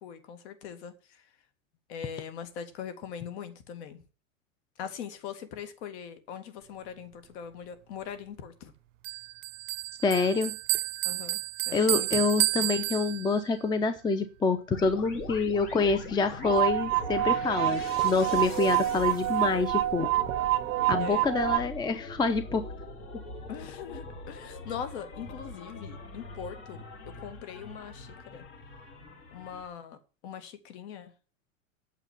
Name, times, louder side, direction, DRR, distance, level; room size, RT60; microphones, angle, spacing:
voice 1, 0.0-1.3 1.9-4.0 4.8-8.7 11.1-11.4 11.7-12.2 12.6-12.7 21.0-21.3 23.5-28.4 29.3-30.0 30.2-31.1, left 8 dB, 55° left, 2.4 m, -41 dB
Bell, 9.0-13.6, right 20 dB, 70° right, 0.5 m, -31 dB
voice 2, 10.0-10.6 11.7-20.1 20.9-22.7, left 4 dB, 10° left, 0.7 m, -27 dB
sound 1, 14.7-29.7, left 2 dB, 30° left, 3.5 m, -42 dB
sound 2, 16.4-21.6, right 14 dB, 35° right, 0.8 m, -27 dB
9.0 x 6.9 x 7.5 m
hypercardioid pair, 120°, 40 cm